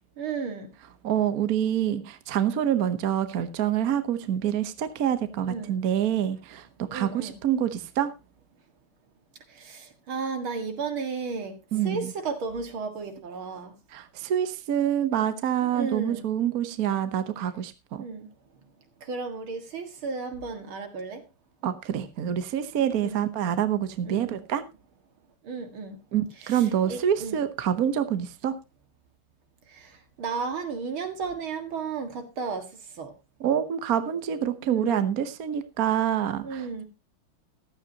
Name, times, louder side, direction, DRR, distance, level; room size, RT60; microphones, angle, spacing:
voice 1, 0.2-0.7 5.4-5.8 6.9-7.3 9.5-11.6 11.8-13.7 15.6-16.2 18.0-18.3 19.0-21.2 23.0-23.3 24.0-24.3 25.4-26.0 26.4-27.4 29.7-32.7 33.0-33.1 34.6-35.0 36.4-36.8, right 5 dB, 70° right, 7 dB, 2.6 m, -34 dB
voice 2, 1.0-8.1 11.7-12.1 13.9-18.0 21.6-24.6 26.1-28.5 33.4-36.7, right 9 dB, 55° right, 11 dB, 1.2 m, -26 dB
15.0 x 12.0 x 2.8 m, 0.25 s
omnidirectional pair, 2.4 m